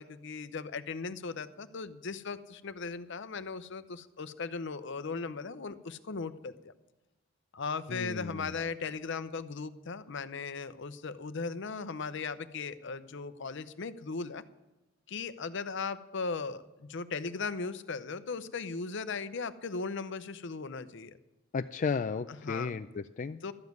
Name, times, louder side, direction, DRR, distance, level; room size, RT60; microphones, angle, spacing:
voice 1, 0.0-6.7 7.5-14.4 15.1-21.2 22.3-22.8 23.4-23.5, left 4 dB, 65° left, 13 dB, 0.7 m, -38 dB
voice 2, 7.9-8.5 21.5-23.4, left 5 dB, 40° left, 9 dB, 0.3 m, -34 dB
13.0 x 7.2 x 9.4 m, 1.0 s
head